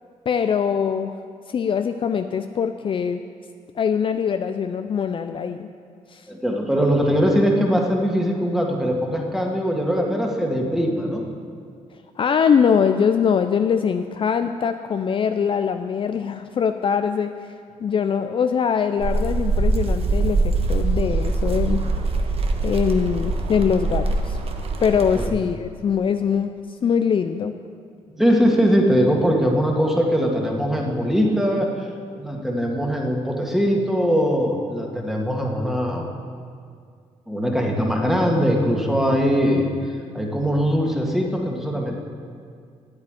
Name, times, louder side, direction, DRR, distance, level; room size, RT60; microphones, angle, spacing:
voice 1, 0.3-1.1 1.5-3.2 3.8-5.7 6.1-6.2 12.2-17.3 17.8-21.8 22.6-24.4 24.8-26.5 26.8-27.5, left 7 dB, 45° left, 8 dB, 0.5 m, -22 dB
voice 2, 6.3-11.2 24.9-25.3 28.1-31.9 32.2-36.1 37.3-39.7 40.1-42.0, equal, 5° right, 0 dB, 2.0 m, -21 dB
sound 1, 19.0-25.3, right 3 dB, 50° right, 1.2 m, -23 dB
8.7 x 8.5 x 9.0 m, 2.2 s
cardioid pair, 90°, 13 cm